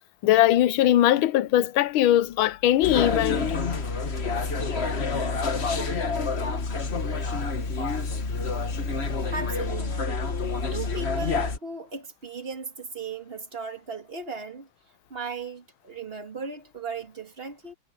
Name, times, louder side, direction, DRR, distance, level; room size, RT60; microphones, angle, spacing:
voice 1, 0.2-3.5, left 13 dB, 80° left, 1.5 m, -20 dB
sound 1, 2.8-11.6, left 4 dB, 35° left, 1.5 m, -28 dB
voice 2, 9.3-14.7 15.1-17.7, right 4 dB, 30° right, 2.3 m, -37 dB
omnidirectional pair, 2.3 m